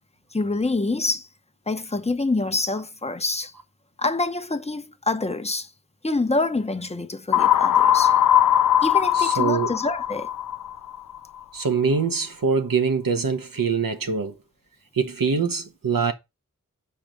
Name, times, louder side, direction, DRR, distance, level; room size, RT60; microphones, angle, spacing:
voice 1, 0.3-1.3 1.7-3.5 4.0-5.7 6.0-8.1 8.8-10.3, left 3 dB, 20° left, 0.8 m, -26 dB
sound 1, 7.3-11.2, left 10 dB, 80° left, 0.5 m, -20 dB
voice 2, 9.1-9.7 11.5-14.3 14.9-16.1, right 5 dB, 80° right, 1.2 m, -24 dB
6.1 x 4.9 x 5.1 m
wide cardioid pair, 55°, 33 cm